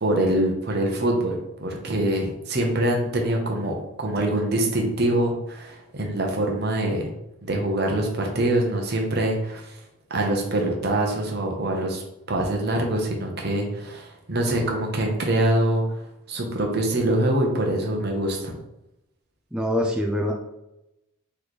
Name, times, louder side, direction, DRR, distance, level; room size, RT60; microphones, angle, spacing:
voice 1, 0.0-7.1 7.4-9.8 10.1-15.8 16.3-18.5, right 1 dB, 45° right, 1 dB, 0.8 m, -24 dB
voice 2, 19.5-20.3, equal, 5° right, 0 dB, 0.4 m, -24 dB
3.3 x 3.1 x 4.1 m, 0.89 s
head